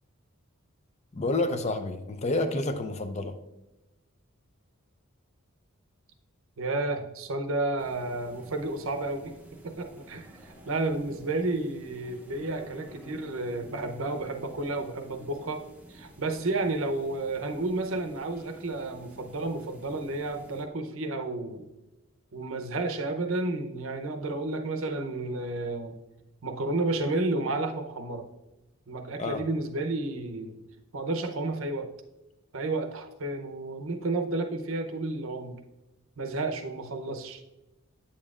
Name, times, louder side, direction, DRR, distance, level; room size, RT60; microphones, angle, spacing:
voice 1, 1.1-3.4 29.2-29.4, left 2 dB, 30° left, 8 dB, 0.5 m, -29 dB
voice 2, 6.6-9.4 9.6-15.6 15.9-21.7 22.3-25.9 26.4-28.3 28.9-30.6 30.9-31.9 32.5-35.5 36.2-37.4, right 2 dB, 65° right, 7 dB, 0.7 m, -31 dB
sound 1, 7.8-20.6, right 1 dB, 5° right, 0.7 m, -50 dB
8.7 x 7.1 x 2.4 m, 1.0 s
head